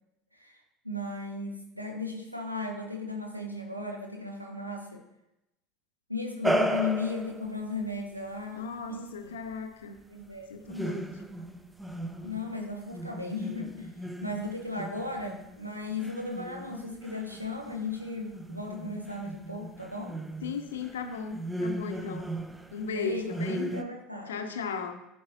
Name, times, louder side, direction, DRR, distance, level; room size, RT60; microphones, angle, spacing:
voice 1, 0.3-5.0 6.1-9.4 10.1-10.5 12.2-13.9 14.2-20.2 22.9-24.4, left 3 dB, 90° right, 2 dB, 0.7 m, -36 dB
sound 1, 6.4-7.5 10.7-12.5 12.9-23.0 23.3-23.8, right 1 dB, 5° right, 0.6 m, -35 dB
voice 2, 8.5-10.0 10.5-11.2 20.4-22.3 22.7-23.7 24.3-25.0, left 5 dB, 70° left, 7 dB, 0.7 m, -36 dB
11.5 x 4.8 x 2.8 m, 0.89 s
figure-of-eight pair, 70°, 0 cm